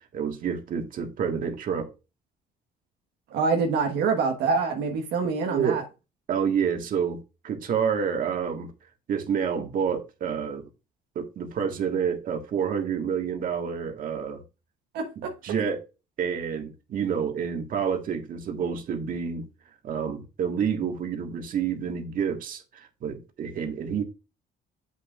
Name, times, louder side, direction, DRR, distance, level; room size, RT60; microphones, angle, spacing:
voice 1, 0.1-1.9 5.2-5.8 6.3-7.2 7.4-8.7 9.1-10.6 11.1-14.4 15.4-15.8 16.2-19.4 19.8-24.0, right 7 dB, 55° right, 1.7 m, -28 dB
voice 2, 3.3-5.8 14.9-15.3, right 4 dB, 80° right, 1.3 m, -25 dB
7.6 x 6.7 x 2.4 m
cardioid pair, 110°, 17 cm